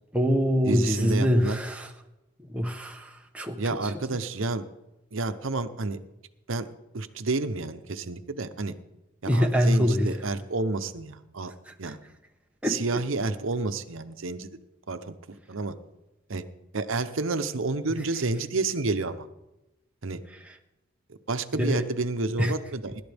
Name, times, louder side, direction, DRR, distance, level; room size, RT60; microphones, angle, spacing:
voice 1, 0.1-1.9 2.4-3.9 9.3-10.1 11.7-11.9 12.6-13.0 20.5-20.6 21.5-21.8 22.4-22.5, equal, 5° right, 2 dB, 0.9 m, -25 dB
voice 2, 0.6-1.6 3.6-4.7 5.1-6.0 6.5-6.7 6.9-8.7 9.2-11.5 11.8-12.0 12.6-14.5 14.9-15.1 15.5-15.7 16.3-16.4 16.7-19.3 20.0-20.2 21.3-23.0, right 3 dB, 65° right, 11 dB, 0.8 m, -30 dB
25.0 x 12.0 x 3.5 m, 0.99 s
head